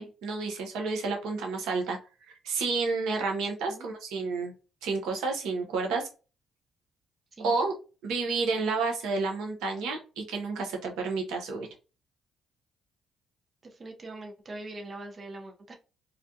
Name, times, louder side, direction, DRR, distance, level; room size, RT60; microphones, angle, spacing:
voice 1, 0.0-2.0 2.4-4.5 4.8-6.1 7.4-7.7 8.0-11.7, right 4 dB, 80° right, 3 dB, 0.7 m, -30 dB
voice 2, 7.3-7.7 13.6-15.7, right 2 dB, 40° right, 2 dB, 0.7 m, -42 dB
2.4 x 2.2 x 2.6 m, 0.32 s
supercardioid pair, 55°, 0 cm